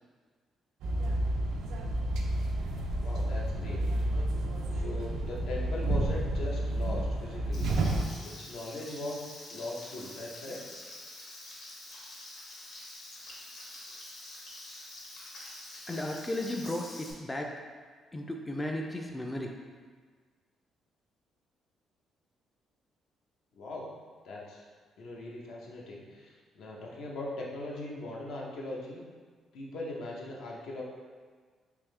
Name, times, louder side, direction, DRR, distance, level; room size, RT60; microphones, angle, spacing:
sound 1, 0.8-8.1, right 1 dB, 85° right, 0.4 m, -30 dB
voice 1, 3.0-3.8 4.4-7.8 8.2-10.6 23.6-23.9 24.2-24.6 25.0-29.0 29.5-30.8, left 2 dB, 80° left, -3 dB, 0.7 m, -40 dB
Frying (food), 7.5-17.1, left 1 dB, 65° left, 1.1 m, -46 dB
voice 2, 15.9-17.6 18.1-19.5, left 1 dB, 15° left, 1 dB, 0.3 m, -35 dB
3.5 x 2.7 x 3.2 m, 1.5 s
cardioid pair, 90°, 0 cm